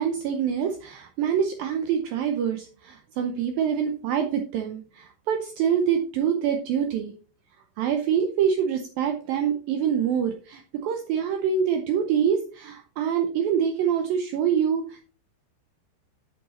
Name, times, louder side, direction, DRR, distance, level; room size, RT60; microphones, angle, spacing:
voice 1, 0.0-7.1 7.8-15.1, right 8 dB, 80° right, 5 dB, 2.1 m, -25 dB
7.8 x 7.5 x 4.2 m, 0.40 s
omnidirectional pair, 4.9 m